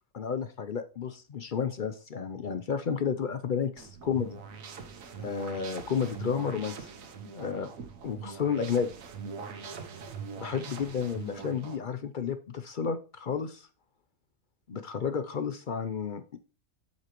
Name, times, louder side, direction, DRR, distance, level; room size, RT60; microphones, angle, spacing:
voice 1, 0.1-4.4 5.2-6.9 7.3-7.7 8.0-8.9 10.4-13.7 14.7-16.4, left 6 dB, 50° left, 10 dB, 0.6 m, -32 dB
sound 1, 3.8-11.8, right 5 dB, 80° right, 1.3 m, -42 dB
7.9 x 6.8 x 3.0 m, 0.34 s
omnidirectional pair, 1.4 m